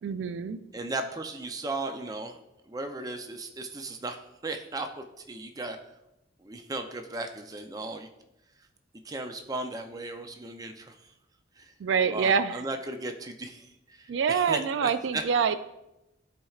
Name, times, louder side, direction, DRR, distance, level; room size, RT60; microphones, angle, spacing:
voice 1, 0.0-0.6 11.8-12.6 14.1-15.6, right 6 dB, 80° right, 12 dB, 0.3 m, -26 dB
voice 2, 0.7-2.4 2.7-5.8 6.4-8.1 9.0-11.0 11.6-11.7 12.1-15.2 15.5-15.6, right 2 dB, 20° right, 6 dB, 0.5 m, -36 dB
12.5 x 4.3 x 2.4 m, 0.91 s
head